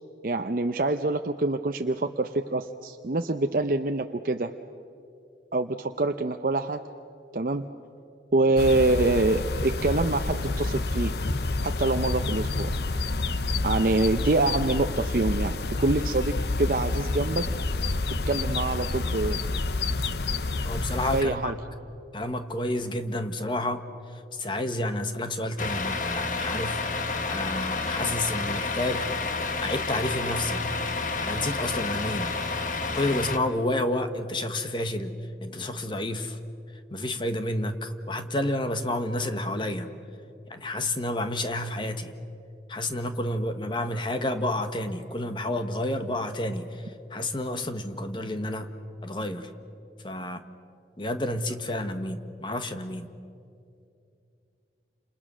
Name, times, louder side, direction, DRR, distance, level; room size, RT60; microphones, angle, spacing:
voice 1, 0.2-4.5 5.5-6.8 7.3-7.7 8.3-11.1 11.6-12.8 13.6-17.5 18.3-19.4 21.1-21.5 30.7-30.8, right 2 dB, 50° right, 6 dB, 0.7 m, -25 dB
sound 1, 8.6-21.2, left 3 dB, 70° left, 0.8 m, -28 dB
voice 2, 20.6-21.5 22.1-23.8 24.3-29.1 29.6-30.6 31.2-32.3 32.9-35.1 35.4-36.4 36.9-39.9 40.5-42.1 42.7-46.8 47.1-48.7 49.0-49.5 50.0-50.4 51.0-53.1, left 1 dB, 25° left, 8 dB, 1.2 m, -30 dB
Truck, 25.6-33.4, left 3 dB, 45° left, 1.3 m, -30 dB
29.5 x 27.5 x 6.2 m, 2.6 s
head